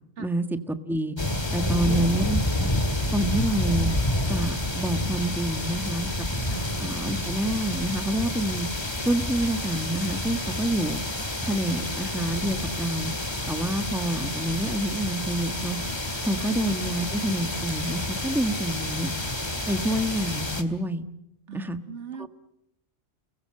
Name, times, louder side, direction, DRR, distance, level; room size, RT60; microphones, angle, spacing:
voice 1, 0.2-1.2 1.5-2.7 3.1-3.9 4.3-6.1 6.8-8.7 9.0-11.0 11.4-13.1 13.5-15.8 16.2-19.1 19.7-21.0 21.5-21.8 22.2-22.3, right 1 dB, ahead, 9 dB, 1.3 m, -27 dB
sound 1, 1.2-20.6, left 1 dB, 20° left, 2.1 m, -29 dB
voice 2, 1.6-2.1 6.5-6.6 21.5-22.3, right 6 dB, 70° right, 11 dB, 1.7 m, -38 dB
29.0 x 21.5 x 7.7 m, 0.82 s
omnidirectional pair, 1.3 m